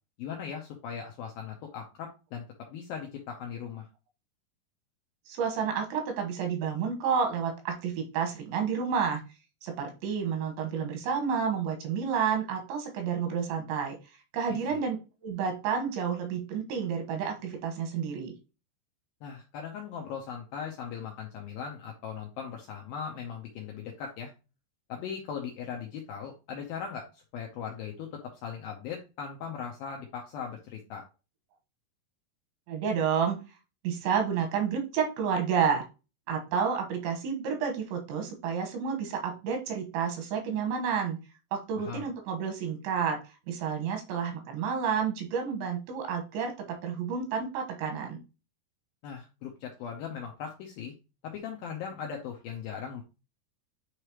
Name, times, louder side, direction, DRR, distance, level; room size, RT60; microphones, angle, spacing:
voice 1, 0.2-3.9 14.5-14.6 19.2-24.3 24.9-31.0 41.8-42.1 49.0-50.9 51.2-53.0, left 7 dB, 80° left, 2 dB, 2.2 m, -39 dB
voice 2, 5.3-9.2 9.6-14.0 14.3-15.0 15.2-18.3 32.7-33.4 33.8-35.9 36.3-41.2 41.5-43.2 43.5-48.2, right 6 dB, 85° right, 3 dB, 3.6 m, -30 dB
9.7 x 3.3 x 3.0 m, 0.30 s
omnidirectional pair, 5.1 m